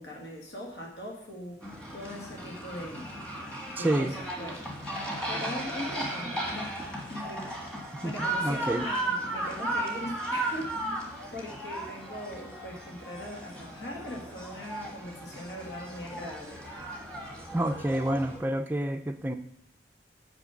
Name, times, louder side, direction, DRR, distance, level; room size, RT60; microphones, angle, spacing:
voice 1, 0.0-1.6 1.9-3.1 3.7-4.7 5.3-6.8 7.1-7.6 8.0-16.7, left 1 dB, 75° left, -1 dB, 1.8 m, -40 dB
sound 1, 1.6-18.4, right 1 dB, 5° left, 1.4 m, -36 dB
voice 2, 3.8-4.1 8.0-8.8 17.5-19.4, right 1 dB, 10° right, 6 dB, 0.4 m, -28 dB
6.1 x 5.3 x 7.0 m, 0.72 s
head